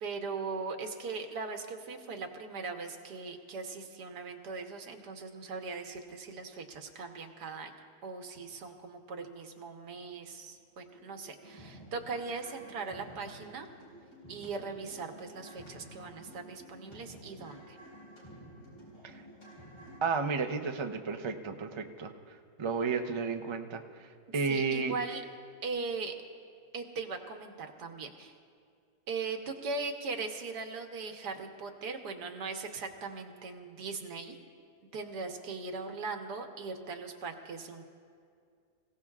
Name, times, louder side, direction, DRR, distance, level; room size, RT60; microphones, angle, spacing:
voice 1, 0.0-7.7 8.0-13.7 14.3-17.8 24.5-25.2 25.6-26.2 26.7-28.3 29.1-34.4 34.9-37.8, right 4 dB, 85° right, 4 dB, 1.7 m, -39 dB
sound 1, 10.0-10.1 10.5-10.6 10.9-20.0, right 1 dB, 15° left, 3.3 m, -52 dB
sound 2, 13.8-14.5 14.7-17.0 17.2-18.2 18.6-19.5 19.7-20.1, left 2 dB, 90° left, 4.6 m, -57 dB
voice 2, 20.0-22.1 22.6-23.8 24.3-24.9, right 4 dB, 45° right, 5 dB, 0.3 m, -32 dB
27.0 x 16.5 x 2.4 m, 2.3 s
omnidirectional pair, 1.7 m